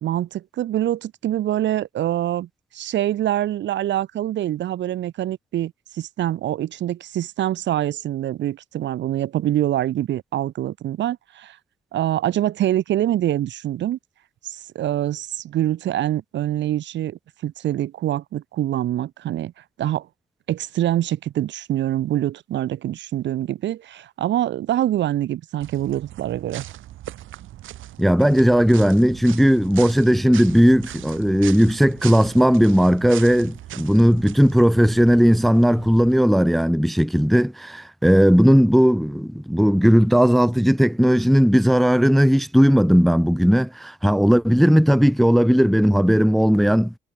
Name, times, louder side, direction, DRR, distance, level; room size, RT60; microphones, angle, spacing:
voice 1, 0.0-11.6 11.9-14.0 14.4-19.5 19.8-20.1 20.5-26.6, right 12 dB, 65° right, 0.7 m, -25 dB
sound 1, 25.6-36.1, right 13 dB, 80° right, 3.6 m, -39 dB
voice 2, 28.0-46.9, equal, ahead, 0.5 m, -17 dB
cardioid pair, 90°, 20 cm